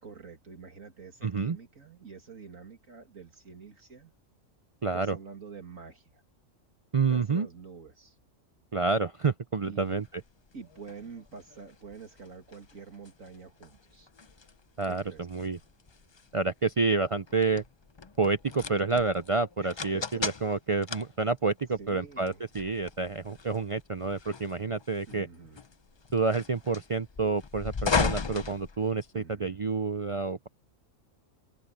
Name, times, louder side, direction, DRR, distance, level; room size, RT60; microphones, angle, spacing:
voice 1, 0.0-4.1 4.9-6.2 7.1-8.2 9.7-10.0 10.5-14.1 14.9-15.6 19.6-20.6 21.8-22.4 25.1-25.6 29.1-29.6, right 5 dB, 75° right, 2.7 m, -47 dB
voice 2, 1.2-1.6 4.8-5.2 6.9-7.5 8.7-10.0 14.8-15.0 15.3-15.6 16.3-17.6 18.2-25.3 26.1-30.5, right 4 dB, 50° right, 0.4 m, -28 dB
sound 1, 10.0-29.4, left 5 dB, 35° left, 0.4 m, -37 dB
omnidirectional pair, 1.4 m